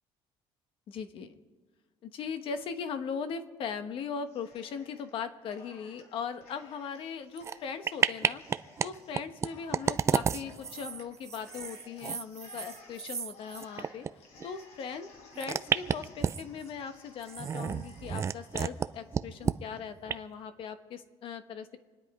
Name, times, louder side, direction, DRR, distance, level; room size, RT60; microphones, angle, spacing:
voice 1, 0.9-1.3 2.0-8.4 8.8-14.1 14.4-15.1 15.3-21.8, left 6 dB, 50° left, 9 dB, 1.2 m, -39 dB
Cheering, 4.3-5.1 5.4-19.8, left 3 dB, 75° left, 5.0 m, -57 dB
sound 1, 7.4-7.6 7.8-8.9 9.1-14.1 14.4-14.5 15.3-16.6 17.2-18.9 19.1-19.6 20.1-20.2, right 7 dB, 25° right, 0.4 m, -31 dB
27.0 x 10.5 x 4.8 m, 1.4 s
cardioid pair, 160°, 11 cm